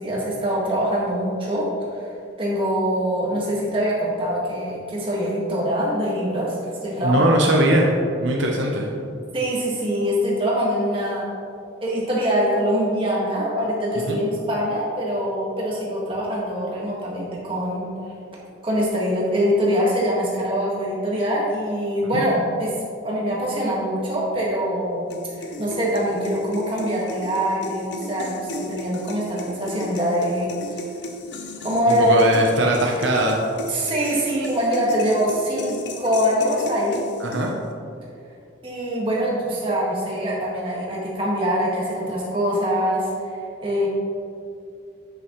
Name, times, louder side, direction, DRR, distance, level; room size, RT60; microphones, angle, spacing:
voice 1, 0.0-7.3 9.3-11.3 11.8-17.9 18.6-22.7 23.0-25.1 25.3-30.8 31.6-32.2 33.7-37.0 38.6-43.9, equal, 25° right, -5 dB, 1.6 m, -24 dB
voice 2, 7.0-7.9 8.2-8.9 14.1-14.2 22.1-22.2 31.9-33.4 37.2-37.5, right 1 dB, 70° right, 0 dB, 0.7 m, -20 dB
sound 1, 25.1-37.7, equal, 60° left, 0.7 m, -35 dB
8.2 x 6.6 x 3.1 m, 2.5 s
head